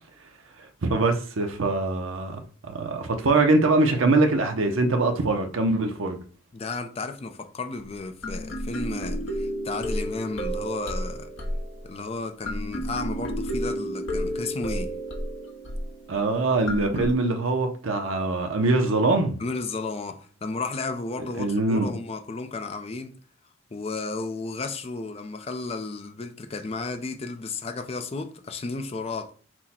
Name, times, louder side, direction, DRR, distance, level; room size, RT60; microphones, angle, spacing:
voice 1, 0.6-6.2 16.1-19.4 21.4-21.9, right 2 dB, 80° right, 0.6 m, -23 dB
voice 2, 6.5-11.3 11.8-14.9 19.4-23.2 23.7-29.3, left 3 dB, 30° left, 0.4 m, -33 dB
sound 1, 7.8-7.9 8.2-17.1, equal, 65° left, 0.9 m, -31 dB
6.0 x 2.1 x 4.2 m
head